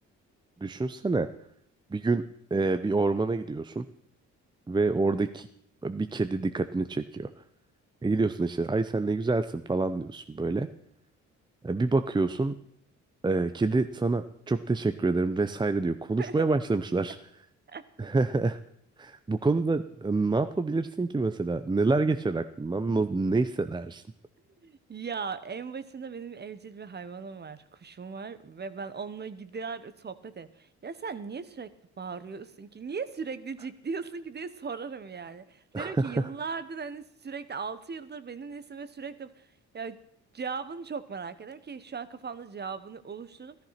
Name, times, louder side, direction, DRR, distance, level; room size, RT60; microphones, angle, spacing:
voice 1, 0.6-1.3 1.9-2.2 2.5-3.9 4.7-5.5 5.8-7.3 8.0-10.7 11.6-12.5 13.2-17.2 18.0-18.6 19.0-24.0 35.7-36.3, right 3 dB, 15° right, 10 dB, 0.6 m, -27 dB
voice 2, 24.6-31.7 32.0-39.3 39.7-40.0 40.3-43.6, right 5 dB, 35° right, 14 dB, 1.2 m, -38 dB
14.0 x 13.0 x 5.8 m, 0.70 s
cardioid pair, 90°, 30 cm